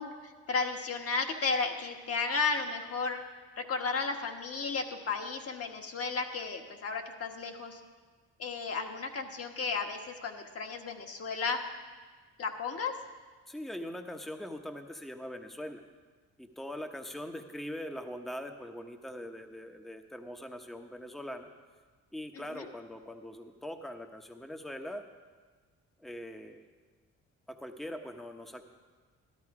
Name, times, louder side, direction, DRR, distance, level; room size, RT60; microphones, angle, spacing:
voice 1, 0.0-3.2 3.6-7.8 8.4-11.6 12.4-12.9 22.3-22.7, left 4 dB, 50° left, 4 dB, 1.5 m, -34 dB
voice 2, 13.5-15.8 16.4-21.5 22.1-25.0 26.0-26.6 27.5-28.6, equal, ahead, 5 dB, 0.9 m, -42 dB
13.0 x 12.5 x 4.8 m, 1.4 s
cardioid pair, 90°, 30 cm